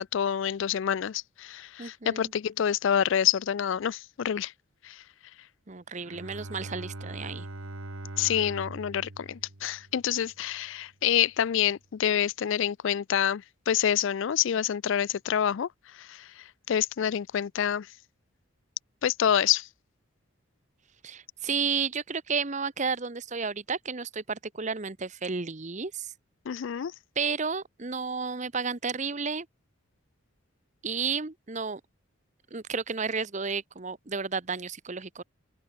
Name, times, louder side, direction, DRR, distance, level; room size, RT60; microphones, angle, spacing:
voice 1, 0.0-4.5 4.8-5.0 8.2-15.7 15.9-17.9 19.0-19.7 26.5-26.9, left 9 dB, 65° left, 0.4 m, -27 dB
voice 2, 1.8-2.3 5.7-7.5 21.0-26.1 27.2-29.5 30.8-31.8 32.5-35.2, right 5 dB, 35° right, 0.9 m, -32 dB
Bowed string instrument, 6.0-10.5, right 2 dB, 80° right, 1.9 m, -42 dB
open air
head